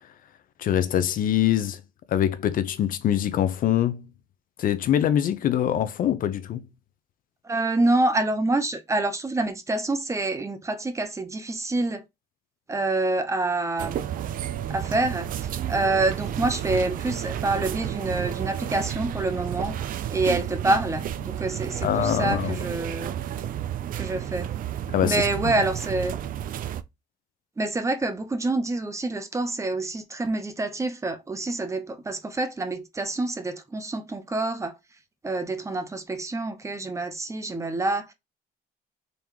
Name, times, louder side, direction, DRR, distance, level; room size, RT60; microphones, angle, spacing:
voice 1, 0.6-1.8 2.1-4.1 4.6-6.6 21.8-22.6 24.9-25.5, left 10 dB, 55° left, 0.5 m, -24 dB
voice 2, 7.4-12.0 12.7-14.0 14.7-19.8 20.1-23.2 24.0-24.5 25.0-26.2 27.6-34.7 35.2-38.1, right 2 dB, 15° right, 0.8 m, -27 dB
sound 1, 13.8-26.8, right 10 dB, 55° right, 0.5 m, -31 dB
3.9 x 3.4 x 2.9 m
cardioid pair, 110°, 17 cm